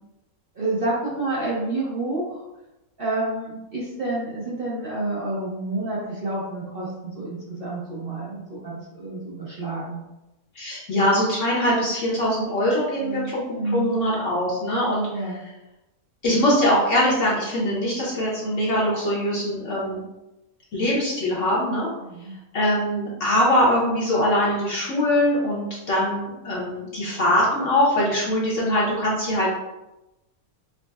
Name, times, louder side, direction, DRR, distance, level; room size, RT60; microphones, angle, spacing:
voice 1, 0.5-2.4 3.0-10.0 13.0-13.9 15.1-15.4 22.0-22.3 28.5-28.6, right 2 dB, 50° right, -6 dB, 0.7 m, -29 dB
voice 2, 10.5-15.1 16.2-20.0 20.7-21.9 22.5-29.6, left 1 dB, 60° left, -6 dB, 1.1 m, -22 dB
5.1 x 2.1 x 2.3 m, 0.96 s
omnidirectional pair, 1.6 m